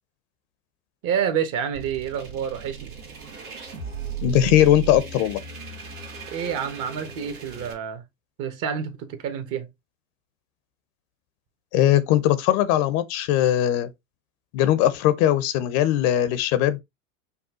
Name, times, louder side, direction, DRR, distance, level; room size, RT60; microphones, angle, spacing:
voice 1, 1.0-2.9 6.3-8.0 8.4-9.7, right 8 dB, 45° right, 1.2 m, -28 dB
sound 1, 1.7-7.7, right 7 dB, 85° right, 1.9 m, -36 dB
voice 2, 4.2-5.4 11.7-13.9 14.5-16.8, left 12 dB, 50° left, 0.7 m, -20 dB
5.5 x 2.3 x 3.6 m
hypercardioid pair, 100°, 43 cm